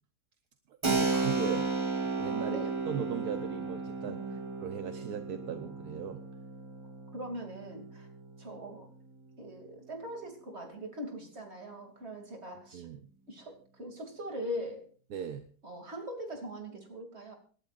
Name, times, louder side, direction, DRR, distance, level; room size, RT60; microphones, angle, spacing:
Keyboard (musical), 0.8-9.2, right 3 dB, 20° right, 1.4 m, -34 dB
voice 1, 0.9-1.7 2.2-6.2 12.7-13.1 15.1-15.5, right 8 dB, 70° right, 8 dB, 1.4 m, -38 dB
voice 2, 2.5-2.8 4.1-4.5 7.1-8.1 8.4-8.9 9.4-12.9 13.3-14.9 15.6-17.4, equal, 40° right, 3 dB, 2.9 m, -41 dB
27.0 x 12.0 x 2.5 m, 0.43 s
omnidirectional pair, 1.7 m